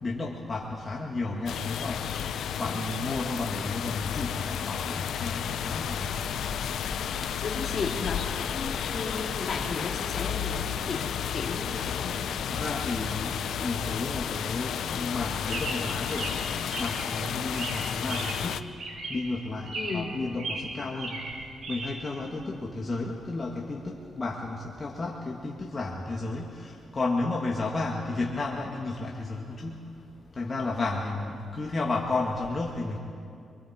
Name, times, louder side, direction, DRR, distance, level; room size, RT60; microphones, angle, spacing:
voice 1, 0.0-2.0 2.6-6.1 12.5-18.6 19.1-21.2 21.7-29.8 30.4-33.0, left 3 dB, 35° left, -1 dB, 1.9 m, -32 dB
sound 1, 1.5-18.6, left 9 dB, 80° left, 0.7 m, -32 dB
sound 2, 5.5-14.3, left 1 dB, 10° left, 1.4 m, -43 dB
voice 2, 7.4-12.1 19.7-20.1, left 4 dB, 50° left, 1 dB, 2.9 m, -35 dB
Chirp tweet, 15.5-17.1 17.5-18.5 18.8-19.3 19.6-20.1 20.4-21.9, right 3 dB, 60° right, 4.9 m, -36 dB
26.5 x 23.0 x 4.4 m, 2.4 s
cardioid pair, 90°, 0 cm